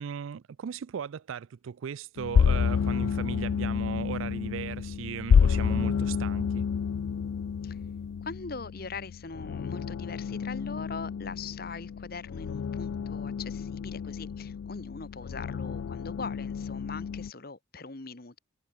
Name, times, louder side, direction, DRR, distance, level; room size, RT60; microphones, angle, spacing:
voice 1, 0.0-6.7, right 7 dB, 75° right, 0.4 m, -37 dB
sound 1, 2.2-17.3, left 6 dB, 70° left, 0.3 m, -29 dB
voice 2, 8.2-18.4, left 4 dB, 45° left, 1.2 m, -41 dB
head